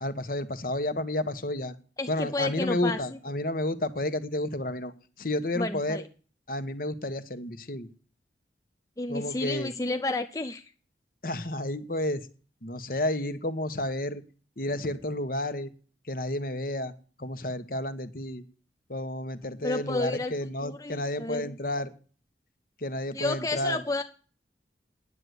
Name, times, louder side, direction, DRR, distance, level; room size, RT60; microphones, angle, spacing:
voice 1, 0.0-1.7 2.1-4.9 5.2-6.0 6.5-7.9 9.1-9.7 11.2-12.2 12.6-14.2 14.6-15.7 16.1-16.9 17.2-18.4 18.9-21.9 22.8-23.8, left 1 dB, 50° left, 11 dB, 1.3 m, -31 dB
voice 2, 2.0-3.0 5.5-6.0 9.0-10.6 19.6-20.4 20.6-21.5 23.1-24.0, left 2 dB, 20° left, 7 dB, 0.6 m, -31 dB
9.8 x 8.1 x 9.4 m, 0.39 s
head